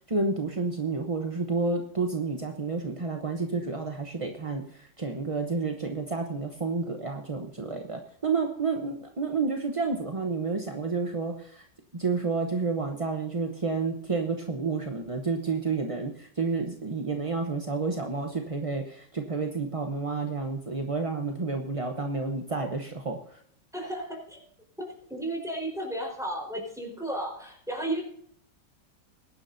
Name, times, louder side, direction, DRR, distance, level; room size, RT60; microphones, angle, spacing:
voice 1, 0.0-11.6 11.9-23.4, right 4 dB, 25° right, 3 dB, 0.7 m, -30 dB
voice 2, 23.7-24.5 24.8-28.0, right 1 dB, ahead, 0 dB, 4.5 m, -34 dB
21.0 x 11.0 x 2.7 m, 0.62 s
omnidirectional pair, 2.0 m